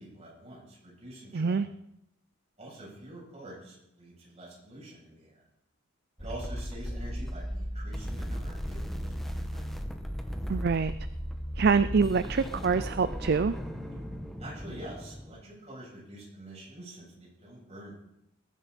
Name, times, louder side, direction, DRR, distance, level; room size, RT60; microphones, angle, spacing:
voice 1, 0.0-1.6 2.6-5.3 6.2-9.7 14.4-17.9, right 1 dB, 30° right, -5 dB, 8.0 m, -46 dB
voice 2, 1.3-1.7 10.5-10.9 11.6-13.6, right 5 dB, 50° right, 13 dB, 0.4 m, -25 dB
sound 1, 6.2-15.3, equal, ahead, 1.2 m, -36 dB
21.0 x 11.5 x 4.3 m, 0.80 s
head